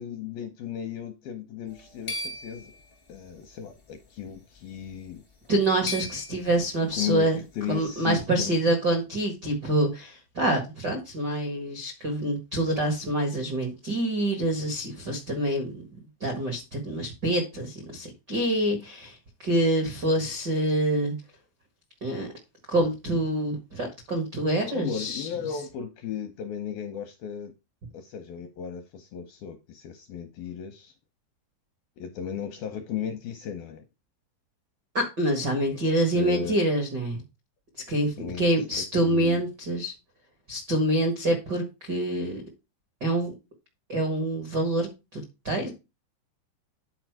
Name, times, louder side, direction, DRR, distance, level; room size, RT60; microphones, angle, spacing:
voice 1, 0.0-2.8 3.1-5.2 6.9-7.3 7.5-8.6 24.6-27.5 27.9-30.9 32.0-33.8 35.7-36.6 38.2-39.4, left 8 dB, 80° left, 2.2 m, -35 dB
sound 1, 1.7-3.4 4.3-4.6 4.9-5.0 5.4-6.7, left 2 dB, 50° left, 0.6 m, -38 dB
voice 2, 5.5-7.4 7.7-15.8 16.2-21.1 22.0-22.3 22.7-25.3 34.9-37.2 37.9-39.9 40.5-42.4 43.0-43.3 43.9-45.7, right 1 dB, 85° right, 0.9 m, -26 dB
10.0 x 4.6 x 4.7 m
omnidirectional pair, 5.2 m